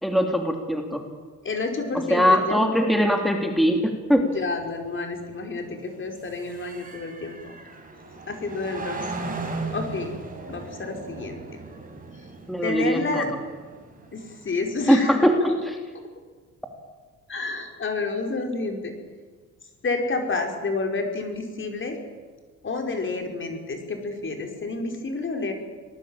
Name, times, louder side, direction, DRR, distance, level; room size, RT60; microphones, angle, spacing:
voice 1, 0.0-1.0 2.1-4.3 12.5-13.3 14.9-15.8, equal, ahead, 3 dB, 3.1 m, -21 dB
voice 2, 1.4-2.7 4.2-7.5 8.3-9.0 9.4-10.2 10.5-11.6 12.1-12.3 12.6-13.3 14.1-15.3 17.3-18.9 19.8-22.0 22.6-25.5, left 3 dB, 40° left, 4 dB, 4.8 m, -29 dB
sound 1, 4.3-15.0, right 3 dB, 30° right, 5.4 m, -38 dB
25.5 x 19.5 x 8.9 m, 1.5 s
cardioid pair, 90°, 30 cm